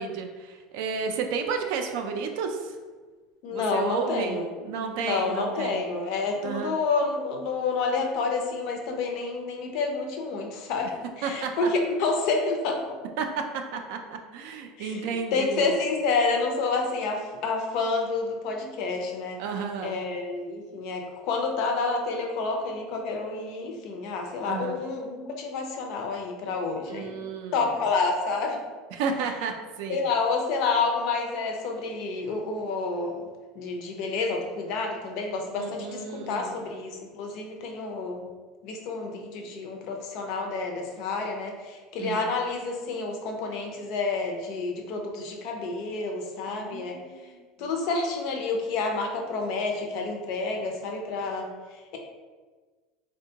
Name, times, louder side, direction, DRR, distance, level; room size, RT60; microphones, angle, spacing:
voice 1, 0.0-2.8 3.5-4.4 4.6-5.8 6.4-6.8 11.2-11.7 13.2-15.7 19.4-20.0 24.4-24.8 26.9-27.6 28.9-29.5 29.8-30.0 35.6-36.5 42.0-42.3 46.5-47.4, right 5 dB, 65° right, 4 dB, 0.3 m, -32 dB
voice 2, 3.4-4.5 5.0-12.8 14.8-19.4 19.8-27.1 27.5-28.6 29.9-33.2 33.5-38.3 38.6-47.0 47.6-52.0, left 4 dB, 50° left, 2 dB, 0.5 m, -29 dB
3.5 x 2.2 x 2.7 m, 1.4 s
cardioid pair, 165°, 0 cm